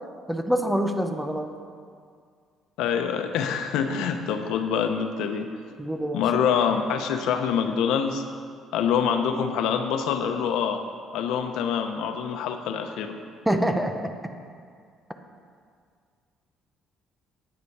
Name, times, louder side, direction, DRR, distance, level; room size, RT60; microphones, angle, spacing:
voice 1, 0.3-1.5 5.8-6.2 13.5-14.0, right 1 dB, 5° right, 5 dB, 0.6 m, -25 dB
voice 2, 2.8-5.5 6.1-8.2 8.7-10.8 11.1-13.2, left 7 dB, 90° left, 6 dB, 0.8 m, -25 dB
9.8 x 9.2 x 4.7 m, 2.1 s
cardioid pair, 175°, 0 cm